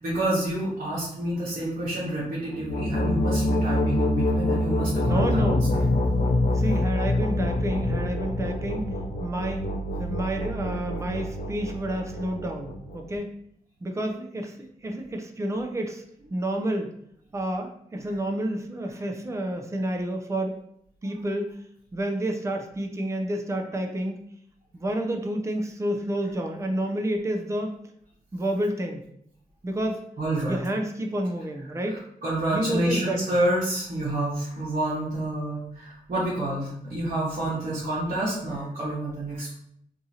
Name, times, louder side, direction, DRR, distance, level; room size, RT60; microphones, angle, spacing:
voice 1, 0.0-5.8 30.2-30.6 31.7-39.5, right 1 dB, 55° right, -9 dB, 1.0 m, -28 dB
sound 1, 2.5-13.2, left 1 dB, 55° left, 0.4 m, -26 dB
voice 2, 5.0-5.6 6.5-9.6 10.0-13.3 13.8-16.0 16.3-16.9 17.3-20.6 21.0-21.6 21.9-24.1 24.7-27.7 28.3-29.0 29.6-30.0 30.5-32.0 32.5-33.3, right 1 dB, 20° right, 3 dB, 0.5 m, -29 dB
2.7 x 2.5 x 2.7 m, 0.69 s
cardioid pair, 60°, 16 cm